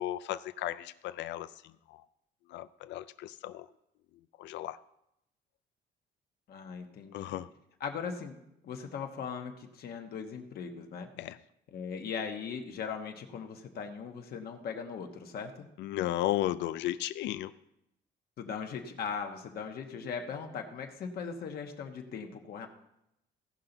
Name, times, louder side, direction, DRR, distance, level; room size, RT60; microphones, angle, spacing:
voice 1, 0.0-1.5 1.9-2.0 2.5-3.7 4.4-4.8 7.1-7.5 11.2-11.4 15.8-17.5, left 13 dB, 80° left, 13 dB, 0.4 m, -34 dB
voice 2, 6.5-7.4 7.8-8.3 8.6-11.1 11.7-15.7 18.4-22.7, left 6 dB, 60° left, 3 dB, 1.2 m, -39 dB
16.5 x 5.7 x 3.9 m, 0.81 s
cardioid pair, 150°, 18 cm